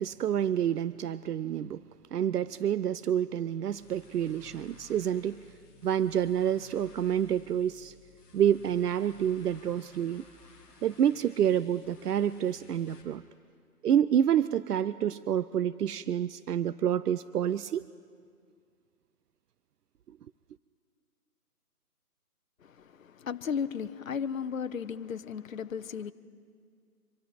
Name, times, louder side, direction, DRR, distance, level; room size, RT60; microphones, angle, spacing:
voice 1, 0.0-1.8 2.1-5.5 5.8-7.9 8.3-10.2 10.8-13.2 13.8-17.8, right 9 dB, 80° right, 17 dB, 0.6 m, -28 dB
sound 1, 3.6-13.0, left 4 dB, 5° left, 1.0 m, -56 dB
voice 2, 22.6-26.1, left 7 dB, 60° left, 11 dB, 0.8 m, -35 dB
25.0 x 12.5 x 4.3 m, 2.1 s
hypercardioid pair, 165°, 46 cm